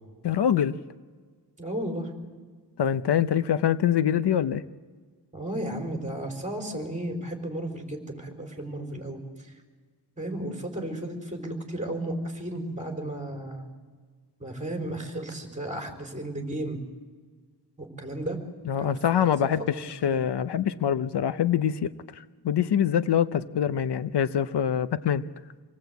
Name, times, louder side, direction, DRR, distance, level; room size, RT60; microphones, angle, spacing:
voice 1, 0.2-0.8 2.8-4.6 18.7-25.3, left 9 dB, 75° left, 12 dB, 0.8 m, -25 dB
voice 2, 1.6-2.1 5.3-9.5 10.2-13.6 14.4-16.8 17.8-18.4 18.8-19.0 19.2-19.5 19.7-20.2, right 1 dB, 20° right, 3 dB, 4.2 m, -34 dB
27.0 x 19.0 x 8.1 m, 1.5 s
wide cardioid pair, 120°, 41 cm